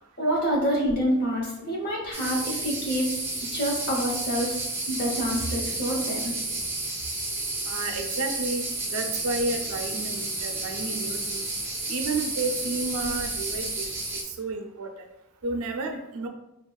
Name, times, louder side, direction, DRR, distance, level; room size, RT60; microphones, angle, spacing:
voice 1, 0.2-3.1 3.5-6.3, equal, 45° left, -3 dB, 0.8 m, -27 dB
sound 1, 2.1-14.2, right 2 dB, 10° right, 0.3 m, -31 dB
voice 2, 7.7-8.6 8.9-11.4 11.9-13.9 14.2-14.9 15.4-16.3, right 3 dB, 80° right, 4 dB, 0.4 m, -31 dB
3.3 x 2.3 x 2.2 m, 0.88 s
head